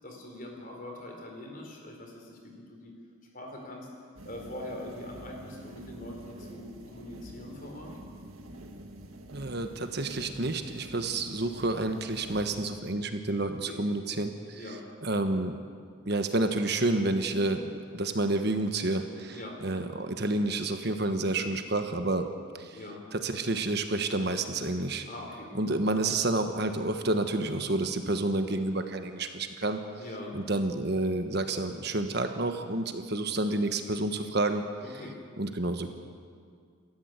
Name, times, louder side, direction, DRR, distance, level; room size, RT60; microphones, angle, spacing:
voice 1, 0.0-2.9 3.3-3.9 4.2-7.9 13.6-13.8 14.5-14.8 19.3-19.6 22.7-23.0 25.1-25.7 30.0-30.4 34.8-35.2, left 1 dB, 40° left, 1 dB, 4.4 m, -42 dB
sound 1, 4.2-12.7, right 1 dB, 90° right, 1.9 m, -47 dB
voice 2, 9.3-14.6 15.0-15.5 16.1-17.7 17.9-22.3 22.6-22.8 23.1-25.0 25.5-29.8 30.3-34.6 35.4-35.9, right 2 dB, 50° right, 7 dB, 1.3 m, -29 dB
28.5 x 13.5 x 8.2 m, 2.1 s
head